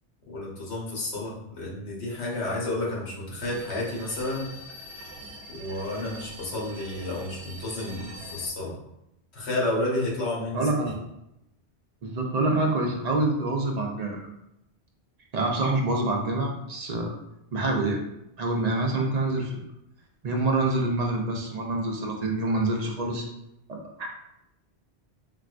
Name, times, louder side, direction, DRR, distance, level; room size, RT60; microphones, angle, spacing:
voice 1, 0.3-4.5 5.5-8.7 9.3-10.7, left 2 dB, 75° left, -4 dB, 1.2 m, -31 dB
sound 1, 3.4-8.5, right 1 dB, 75° right, 0.9 m, -43 dB
voice 2, 10.5-11.0 12.0-14.2 15.3-17.1 17.5-18.0 18.4-19.6 20.2-23.3 23.7-24.1, right 2 dB, 50° right, 1 dB, 0.5 m, -26 dB
4.0 x 2.2 x 2.4 m, 0.85 s
omnidirectional pair, 1.1 m